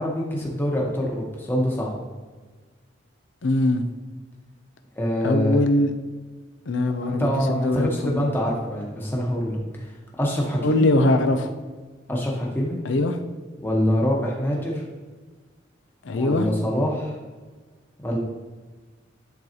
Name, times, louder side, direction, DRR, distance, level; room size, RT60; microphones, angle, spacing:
voice 1, 0.0-1.9 5.0-5.6 7.1-9.9 10.2-10.9 12.1-12.8 13.6-14.8 16.2-17.1 18.0-18.2, equal, 10° left, -2 dB, 1.1 m, -25 dB
voice 2, 3.4-3.8 5.2-5.9 6.7-8.2 10.6-11.5 12.8-13.2 16.0-16.5, left 2 dB, 75° left, 8 dB, 0.6 m, -21 dB
10.5 x 3.9 x 2.9 m, 1.4 s
head